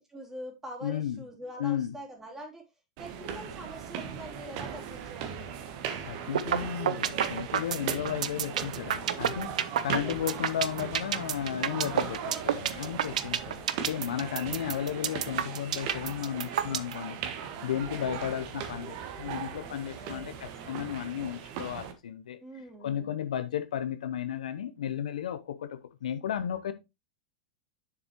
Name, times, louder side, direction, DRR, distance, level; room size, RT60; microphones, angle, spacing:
voice 1, 0.1-2.7 3.0-5.5 10.0-10.1 12.2-12.4 13.3-13.7 14.0-14.5 17.9-18.0 19.9-20.6 22.4-23.2, right 1 dB, 10° right, 2.8 m, -45 dB
voice 2, 0.8-1.2 1.6-1.9 6.0-17.2 17.6-22.4 22.8-26.7, left 9 dB, 75° left, 0.7 m, -34 dB
sound 1, 3.0-21.9, right 8 dB, 55° right, 1.5 m, -39 dB
sound 2, 6.3-6.6 6.9-16.9, right 9 dB, 75° right, 0.6 m, -28 dB
7.0 x 6.8 x 3.0 m
hypercardioid pair, 95°, 4 cm